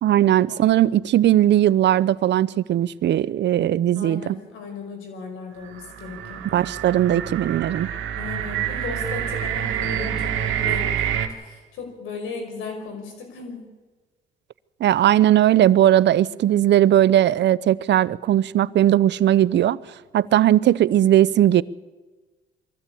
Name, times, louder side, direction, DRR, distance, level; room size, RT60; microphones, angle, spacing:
voice 1, 0.0-4.4 6.5-7.9 14.8-19.8 20.1-21.6, right 12 dB, 65° right, 0.6 m, -18 dB
voice 2, 3.9-6.4 8.1-13.7, left 4 dB, 90° left, 5.2 m, -36 dB
sound 1, 5.6-11.3, right 10 dB, 90° right, 2.1 m, -27 dB
22.5 x 14.5 x 8.5 m
cardioid pair, 90°, 20 cm